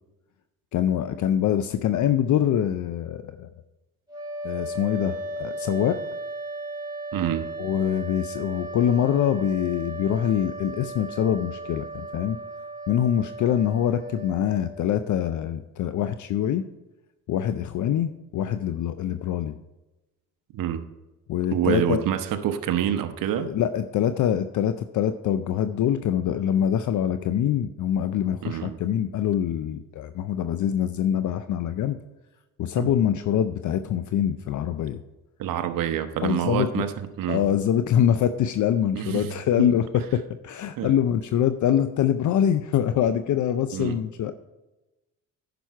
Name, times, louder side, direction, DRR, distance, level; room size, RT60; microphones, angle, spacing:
voice 1, 0.7-3.5 4.4-6.0 7.6-12.4 12.9-16.6 17.3-19.5 21.3-22.0 23.4-32.0 32.6-35.0 36.2-36.9 37.3-44.3, left 9 dB, 60° left, 10 dB, 0.5 m, -24 dB
sound 1, 4.1-15.0, right 2 dB, 10° right, 3.3 m, -36 dB
voice 2, 7.1-7.5 20.5-20.8 21.5-23.5 28.4-28.8 32.8-32.9 35.4-37.5 38.9-39.7 40.8-40.9 43.7-44.0, right 10 dB, 70° right, 8 dB, 0.9 m, -27 dB
10.0 x 6.1 x 4.6 m, 1.0 s
cardioid pair, 80°, 35 cm